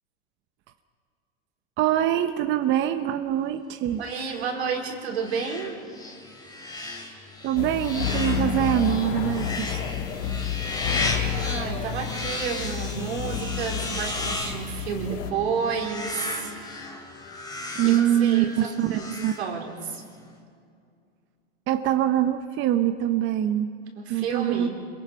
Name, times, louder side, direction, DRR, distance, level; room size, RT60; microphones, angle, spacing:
voice 1, 1.8-4.0 7.4-9.9 17.7-19.4 21.7-23.7 24.1-24.7, right 11 dB, 35° right, 8 dB, 0.9 m, -24 dB
sound 1, 4.0-20.0, left 2 dB, 15° left, 3.3 m, -35 dB
voice 2, 4.0-5.8 11.4-16.5 17.8-19.1 19.4-20.0 23.9-24.7, right 6 dB, 80° right, 1 dB, 4.4 m, -31 dB
sound 2, 7.6-15.3, left 7 dB, 60° left, 2.0 m, -30 dB
27.0 x 22.5 x 5.6 m, 2.3 s
hypercardioid pair, 125°, 32 cm